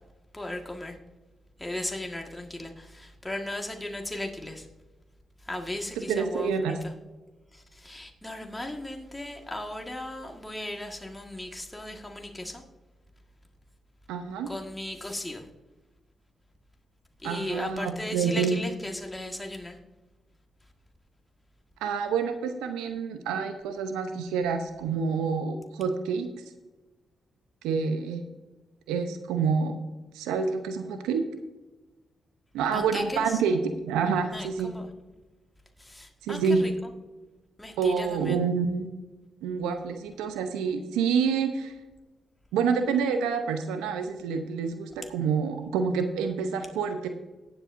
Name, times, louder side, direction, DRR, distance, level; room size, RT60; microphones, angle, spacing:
voice 1, 0.3-0.9 1.6-4.6 5.5-6.5 7.8-12.6 14.5-15.4 17.2-19.8 32.7-33.2 34.3-34.9 35.8-36.7 37.6-38.3, left 1 dB, 15° left, 3 dB, 1.6 m, -36 dB
voice 2, 6.1-6.8 14.1-14.5 17.2-18.6 21.8-26.3 27.6-28.2 28.9-29.8 30.1-31.2 32.5-34.7 36.2-36.6 37.8-38.9 39.4-41.7 42.5-47.1, right 5 dB, 90° right, 7 dB, 0.7 m, -27 dB
18.5 x 7.9 x 2.6 m, 1.1 s
supercardioid pair, 50°, 0 cm